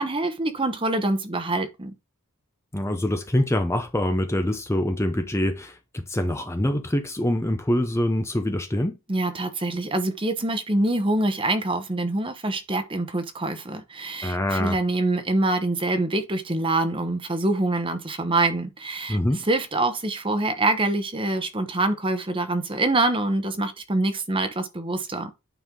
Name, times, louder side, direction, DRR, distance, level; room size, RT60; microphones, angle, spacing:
voice 1, 0.0-1.9 9.1-19.2 19.4-25.3, right 2 dB, 25° right, 1.0 m, -25 dB
voice 2, 2.7-9.0 14.2-14.8 19.1-19.4, left 1 dB, 10° left, 0.7 m, -25 dB
9.2 x 5.4 x 3.8 m
head